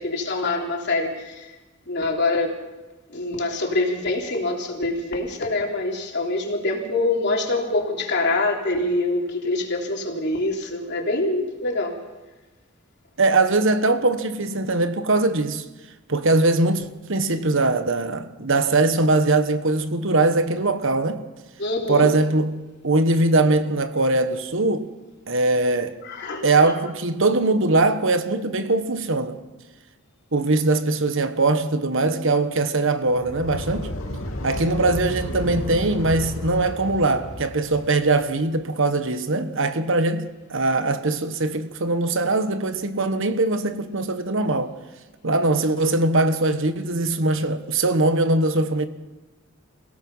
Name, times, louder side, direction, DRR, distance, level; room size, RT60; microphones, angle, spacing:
voice 1, 0.0-1.5 1.9-2.6 3.1-12.0 21.6-22.1 26.0-26.7, left 2 dB, 55° left, 3.5 m, -25 dB
voice 2, 13.2-15.6 16.1-21.2 21.9-24.9 25.3-25.9 26.4-29.4 30.3-33.9 34.4-44.7 45.2-48.9, right 2 dB, 60° right, 1.3 m, -21 dB
sound 1, 33.0-38.2, left 1 dB, 80° left, 2.8 m, -32 dB
28.5 x 17.0 x 5.6 m
head